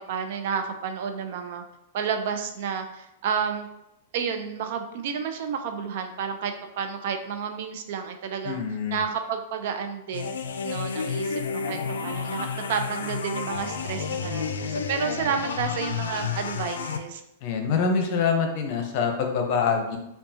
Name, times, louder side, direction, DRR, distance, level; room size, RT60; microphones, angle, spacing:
voice 1, 0.1-1.6 1.9-3.7 4.1-8.6 8.9-10.3 10.6-17.2, right 6 dB, 60° right, 6 dB, 0.5 m, -31 dB
voice 2, 8.4-9.0 17.4-20.0, left 5 dB, 50° left, 4 dB, 0.7 m, -25 dB
sound 1, 10.1-17.0, left 6 dB, 85° left, 0.4 m, -31 dB
5.3 x 2.3 x 2.8 m, 0.85 s
hypercardioid pair, 120°, 0 cm